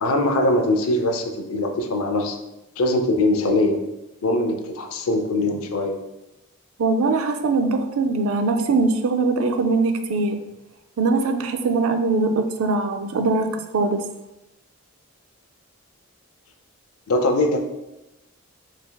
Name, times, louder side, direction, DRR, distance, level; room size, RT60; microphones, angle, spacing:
voice 1, 0.0-2.4 2.8-3.8 4.2-5.9 17.1-17.6, left 1 dB, 75° left, 4 dB, 0.5 m, -21 dB
voice 2, 6.8-10.4 11.0-14.0, right 3 dB, 75° right, 7 dB, 0.4 m, -21 dB
4.0 x 3.4 x 2.2 m, 0.93 s
head